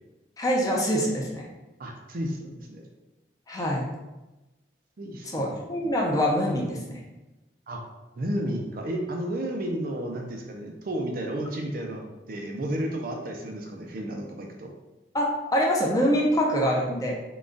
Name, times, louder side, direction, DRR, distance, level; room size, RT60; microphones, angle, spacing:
voice 1, 0.4-1.4 3.5-3.9 5.3-7.0 15.1-17.1, equal, 20° left, -2 dB, 0.5 m, -25 dB
voice 2, 1.8-2.9 5.0-5.5 7.7-7.8 8.2-14.7, right 1 dB, 50° right, 1 dB, 0.5 m, -32 dB
3.8 x 2.3 x 3.7 m, 1.0 s
head